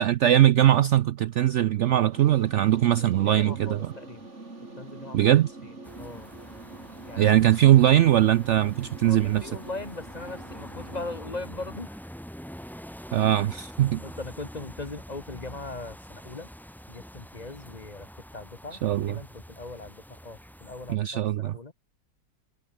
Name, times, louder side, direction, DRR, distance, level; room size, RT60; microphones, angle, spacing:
voice 1, 0.0-3.9 5.1-5.6 7.2-9.5 13.1-14.0 18.8-19.2 20.9-21.6, right 12 dB, 85° right, 0.6 m, -21 dB
sound 1, 2.1-11.2, right 2 dB, 40° right, 4.3 m, -45 dB
voice 2, 3.0-4.2 4.8-5.3 6.0-6.3 7.1-7.3 7.6-7.7 9.0-12.0 14.0-16.5 16.9-21.7, left 3 dB, 25° left, 1.3 m, -40 dB
sound 2, 5.8-20.9, equal, ahead, 0.9 m, -45 dB
omnidirectional pair, 1.8 m